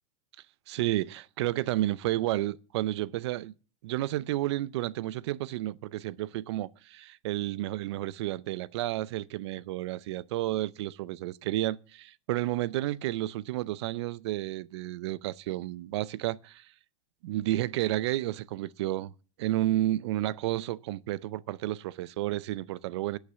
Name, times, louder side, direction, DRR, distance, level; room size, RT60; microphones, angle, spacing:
voice 1, 0.7-3.5 3.8-16.6 17.2-19.1 19.4-23.2, right 15 dB, 60° right, 0.5 m, -31 dB
12.0 x 6.5 x 7.9 m
supercardioid pair, 170°, 16 cm